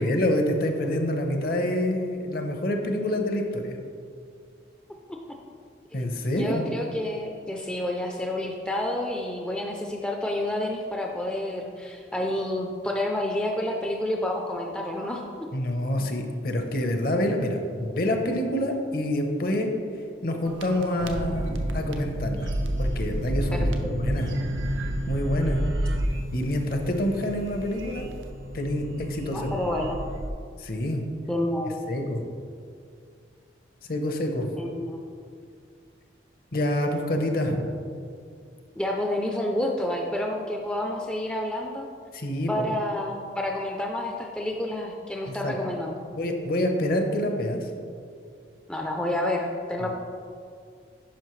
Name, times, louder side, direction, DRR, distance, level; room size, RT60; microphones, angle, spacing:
voice 1, 0.0-3.8 5.9-6.7 15.5-19.7 20.2-22.5 22.8-24.3 25.1-25.6 26.3-28.1 28.5-29.5 30.6-31.0 31.9-32.2 33.9-34.5 36.5-37.6 42.1-42.7 45.3-45.5 46.1-47.7, left 1 dB, 50° left, 4 dB, 0.8 m, -27 dB
voice 2, 6.0-15.2 23.5-23.9 29.3-30.0 31.3-31.8 34.6-35.0 38.8-41.9 42.5-46.0 48.7-49.9, left 1 dB, 5° left, 0 dB, 0.4 m, -29 dB
sound 1, 20.4-30.3, equal, 90° right, 0.6 m, -30 dB
10.5 x 5.5 x 3.1 m, 2.3 s
head